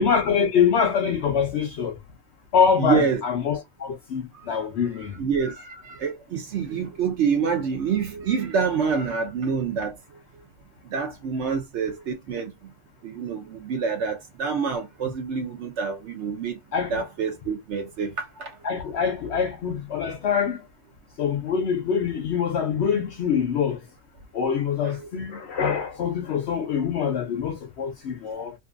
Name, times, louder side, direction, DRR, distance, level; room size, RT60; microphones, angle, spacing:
voice 1, 0.0-2.0 2.5-5.2 16.7-17.0 18.6-20.6 21.2-23.8 24.3-28.5, left 7 dB, 65° left, 0.7 m, -24 dB
voice 2, 2.8-3.2 4.3-4.5 5.2-10.0 10.8-12.7 13.0-16.6 16.9-18.6, right 6 dB, 65° right, 0.8 m, -27 dB
2.6 x 2.5 x 2.4 m
omnidirectional pair, 1.5 m